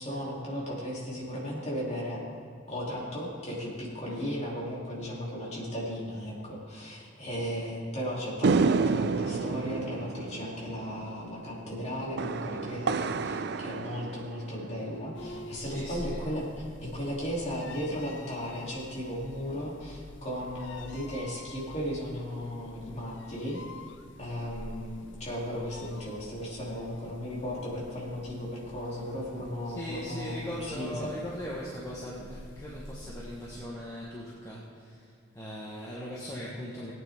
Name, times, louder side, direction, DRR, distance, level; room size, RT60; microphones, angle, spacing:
voice 1, 0.0-2.2 2.7-23.6 24.2-31.0, equal, 35° left, -5 dB, 3.0 m, -36 dB
voice 2, 4.0-4.4 7.4-7.5 15.5-16.3 29.6-36.9, equal, 15° left, -6 dB, 1.3 m, -40 dB
sound 1, 8.4-14.9, right 4 dB, 55° right, 0.4 m, -30 dB
sound 2, 15.1-33.6, left 1 dB, 65° left, 0.7 m, -47 dB
18.5 x 9.1 x 3.6 m, 2.4 s
head